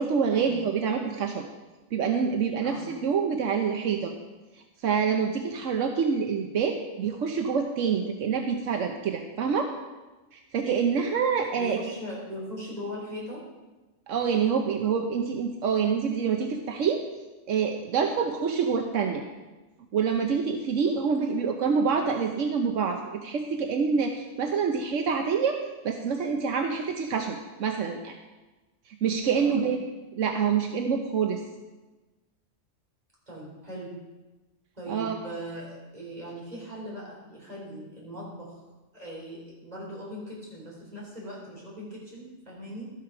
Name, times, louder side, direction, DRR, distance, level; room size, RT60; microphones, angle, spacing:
voice 1, 0.0-1.5 1.9-4.1 4.8-9.7 10.3-11.8 14.1-17.0 17.5-19.2 19.9-25.6 25.8-28.1 29.0-29.8 30.1-31.4 34.9-35.2, right 6 dB, 80° right, 4 dB, 1.2 m, -26 dB
voice 2, 11.5-13.4 21.0-21.4 29.3-29.6 33.3-34.0 34.8-38.6 38.9-42.9, equal, 30° right, -4 dB, 4.2 m, -40 dB
12.0 x 8.4 x 5.8 m, 1.2 s
omnidirectional pair, 1.3 m